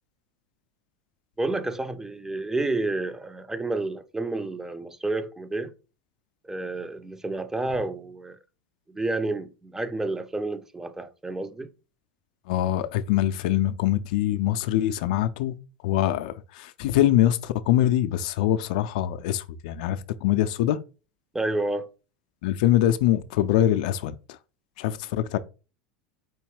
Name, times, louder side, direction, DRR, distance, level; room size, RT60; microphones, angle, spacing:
voice 1, 1.4-5.7 6.4-8.4 8.9-11.7 21.3-21.9, right 2 dB, 10° right, 0.4 m, -30 dB
voice 2, 12.5-15.5 15.8-20.8 22.4-24.1 24.8-25.4, left 12 dB, 60° left, 0.3 m, -23 dB
4.5 x 2.7 x 3.1 m
figure-of-eight pair, 80°, 5 cm